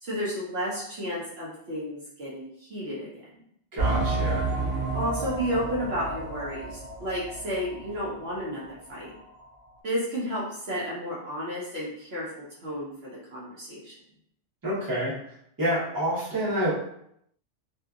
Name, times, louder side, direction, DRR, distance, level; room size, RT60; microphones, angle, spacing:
voice 1, 0.0-3.2 4.9-9.1 9.8-13.9, equal, 60° right, -8 dB, 1.0 m, -32 dB
voice 2, 3.7-4.5 14.6-15.1 15.6-16.7, equal, 20° right, -9 dB, 1.0 m, -27 dB
sound 1, 3.8-8.1 8.4-8.5 9.0-9.1, right 3 dB, 35° right, 0.6 m, -30 dB
2.8 x 2.4 x 2.4 m, 0.72 s
omnidirectional pair, 1.3 m